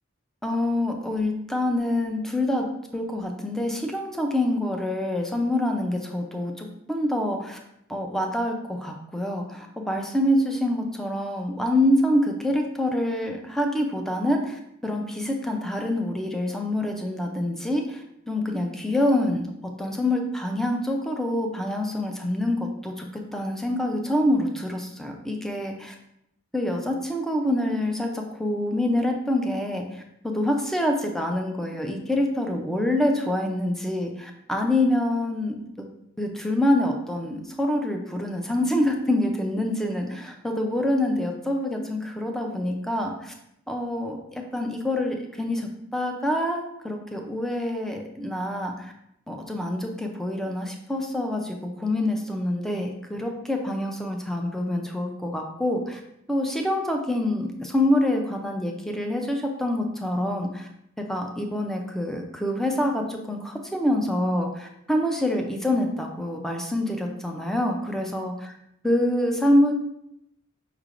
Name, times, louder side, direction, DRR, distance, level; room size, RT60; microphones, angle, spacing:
voice 1, 0.4-2.7 2.9-7.6 7.9-25.9 26.5-35.9 36.2-43.3 43.7-48.9 49.3-56.0 56.3-60.7 61.1-68.3 68.8-69.7, left 1 dB, ahead, 2 dB, 0.4 m, -26 dB
5.5 x 3.3 x 2.5 m, 0.78 s
head